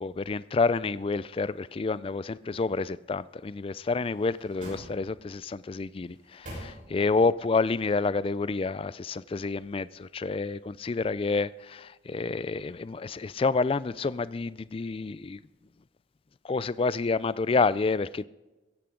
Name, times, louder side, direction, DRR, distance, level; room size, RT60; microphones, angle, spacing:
voice 1, 0.0-15.4 16.4-18.2, left 4 dB, 30° left, 0.3 m, -29 dB
sound 1, 3.7-5.4 6.0-7.3 7.6-7.7, equal, 45° right, 5.9 m, -45 dB
16.0 x 15.5 x 3.8 m
head